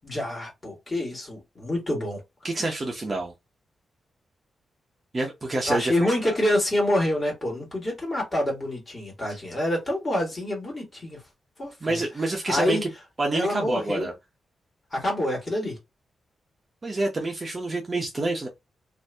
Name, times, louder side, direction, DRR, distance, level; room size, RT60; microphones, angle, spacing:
voice 1, 0.0-2.2 5.6-11.2 11.6-12.0 12.5-12.8 13.3-14.1 14.9-15.8, left 1 dB, 25° left, 1.4 m, -27 dB
voice 2, 2.4-3.3 5.1-6.4 11.8-12.9 13.2-14.1 16.8-18.5, right 2 dB, 25° right, 0.7 m, -27 dB
2.7 x 2.5 x 3.3 m
wide cardioid pair, 175°, 0 cm